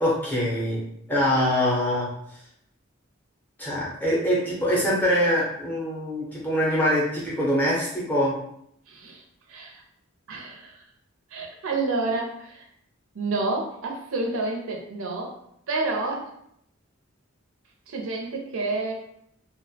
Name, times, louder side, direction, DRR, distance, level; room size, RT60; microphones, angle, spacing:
voice 1, 0.0-0.8 1.1-2.1 3.6-8.4, equal, 10° left, -6 dB, 0.5 m, -24 dB
voice 2, 8.9-9.2 9.5-9.8 10.3-10.8 11.3-12.7 13.1-15.3 15.7-16.3 17.9-18.9, right 3 dB, 75° right, 1 dB, 0.5 m, -29 dB
2.3 x 2.0 x 2.6 m, 0.73 s
head